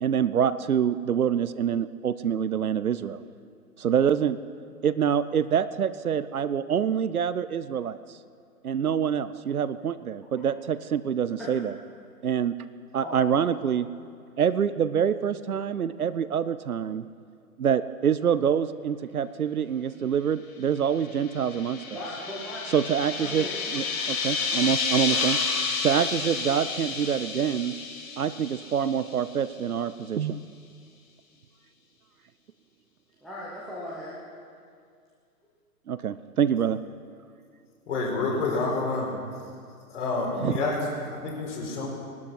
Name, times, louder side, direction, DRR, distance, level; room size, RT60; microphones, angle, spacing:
voice 1, 0.0-3.2 3.8-4.4 4.8-8.0 8.6-11.7 12.2-12.5 12.9-13.9 14.4-17.0 17.6-21.8 22.7-23.4 23.7-25.4 25.8-27.7 28.2-30.4 35.9-36.8 40.4-40.5, right 8 dB, 70° right, 14 dB, 0.7 m, -26 dB
voice 2, 11.4-11.7 13.0-13.5 21.9-22.6 23.2-23.6 25.0-25.2 33.2-34.2, equal, ahead, -7 dB, 0.6 m, -38 dB
sound 1, 21.0-29.3, left 5 dB, 25° left, 1.7 m, -31 dB
voice 3, 37.9-39.2 39.9-41.9, left 3 dB, 50° left, -2 dB, 4.7 m, -28 dB
19.0 x 12.0 x 5.8 m, 2.2 s
figure-of-eight pair, 130°, 46 cm